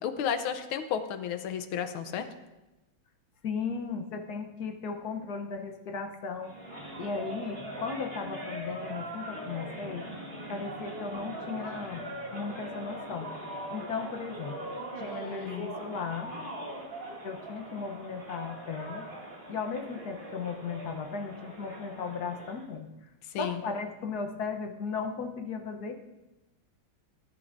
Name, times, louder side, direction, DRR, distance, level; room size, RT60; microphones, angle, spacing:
voice 1, 0.0-2.3 15.0-15.7 23.3-23.6, left 8 dB, 80° left, 9 dB, 1.6 m, -33 dB
voice 2, 3.4-6.5 7.0-10.1 10.5-12.0 12.3-13.3 13.7-16.4 17.2-19.0 19.5-22.9 23.4-25.9, left 5 dB, 60° left, 5 dB, 1.2 m, -36 dB
sound 1, 6.4-22.6, right 1 dB, 25° right, 2.4 m, -41 dB
18.0 x 10.5 x 2.6 m, 1.0 s
omnidirectional pair, 2.3 m